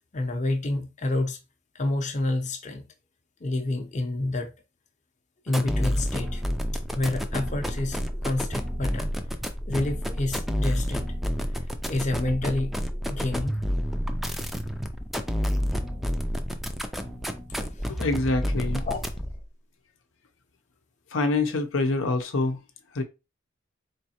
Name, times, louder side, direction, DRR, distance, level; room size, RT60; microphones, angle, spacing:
voice 1, 0.1-1.4 1.7-2.9 3.4-4.5 5.4-6.4 6.9-9.1 9.7-11.1 11.5-12.7 13.1-13.6 17.8-17.9 18.9-19.0, left 2 dB, 40° left, 0.7 m, -28 dB
sound 1, 5.5-19.4, equal, ahead, 0.4 m, -29 dB
voice 2, 17.9-18.9 21.1-22.6 22.9-23.0, left 2 dB, 85° left, 0.7 m, -25 dB
4.1 x 3.2 x 2.9 m
head